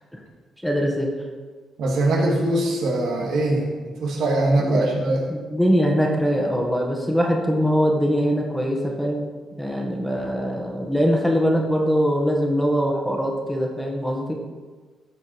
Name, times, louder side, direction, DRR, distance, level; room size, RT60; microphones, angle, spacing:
voice 1, 0.6-1.1 4.6-4.9 5.3-9.3 9.6-14.3, equal, ahead, 0 dB, 1.7 m, -22 dB
voice 2, 1.8-3.7 4.0-5.3, right 1 dB, 75° right, -1 dB, 2.2 m, -21 dB
13.0 x 5.4 x 4.8 m, 1.4 s
cardioid pair, 90°, 0 cm